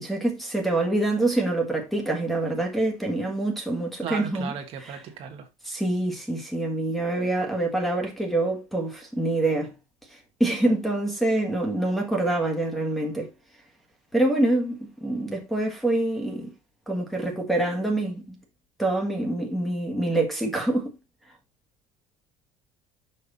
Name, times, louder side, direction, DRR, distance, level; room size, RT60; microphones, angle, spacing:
voice 1, 0.0-4.5 4.8-5.0 5.6-9.7 10.1-13.3 14.1-16.5 16.9-18.4 18.8-20.9, right 2 dB, ahead, 1.7 m, -26 dB
voice 2, 4.0-5.5, right 7 dB, 45° right, 1.5 m, -35 dB
5.8 x 5.7 x 4.0 m
cardioid pair, 165°, 14 cm